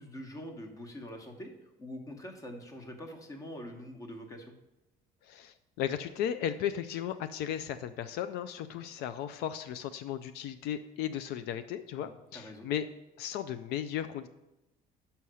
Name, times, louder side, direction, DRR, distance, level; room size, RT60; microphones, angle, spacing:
voice 1, 0.0-1.5 1.8-4.5 12.0-12.7, equal, 20° left, 5 dB, 1.0 m, -44 dB
voice 2, 5.2-12.9 13.2-14.3, left 10 dB, 75° left, 11 dB, 0.4 m, -35 dB
5.6 x 5.6 x 6.2 m, 0.94 s
cardioid pair, 150°, 16 cm